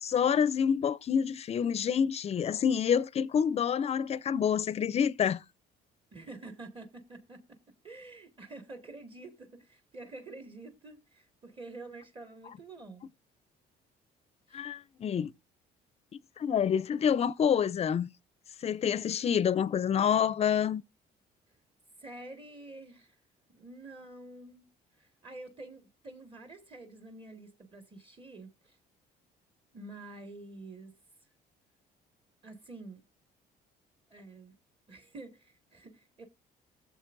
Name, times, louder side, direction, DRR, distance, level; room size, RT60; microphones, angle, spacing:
voice 1, 0.0-5.4 14.5-15.3 16.4-18.1 18.6-20.8, left 8 dB, 40° left, 0.5 m, -27 dB
voice 2, 6.1-7.6 7.8-13.0 14.5-14.6 22.0-23.2 23.5-24.7 25.0-28.8 29.7-31.0 32.4-33.0 34.1-34.5 34.9-36.2, right 2 dB, 30° right, 1.8 m, -48 dB
20.0 x 7.1 x 2.6 m
cardioid pair, 110°, 17 cm